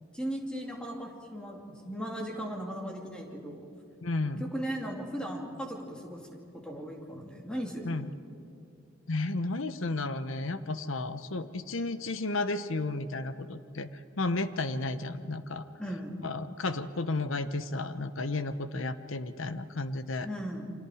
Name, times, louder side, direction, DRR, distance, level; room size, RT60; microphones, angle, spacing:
voice 1, 0.1-3.7 4.2-6.2 6.5-8.0 15.8-16.3 20.2-20.7, equal, 5° left, 0 dB, 2.5 m, -37 dB
voice 2, 4.0-4.5 7.8-8.1 9.1-13.9 14.2-15.6 16.2-20.3, left 2 dB, 75° left, 12 dB, 1.0 m, -33 dB
29.0 x 25.0 x 5.0 m, 2.6 s
head